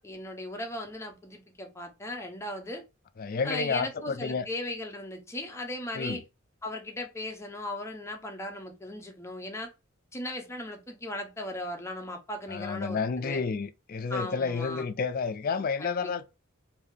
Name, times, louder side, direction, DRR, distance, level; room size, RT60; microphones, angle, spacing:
voice 1, 0.0-2.8 3.4-6.2 6.6-9.7 10.1-13.4 14.1-14.8 15.8-16.3, left 1 dB, 15° left, 0.7 m, -37 dB
voice 2, 3.2-4.5 5.9-6.2 12.5-16.3, left 5 dB, 45° left, 0.4 m, -30 dB
3.4 x 2.7 x 3.6 m
head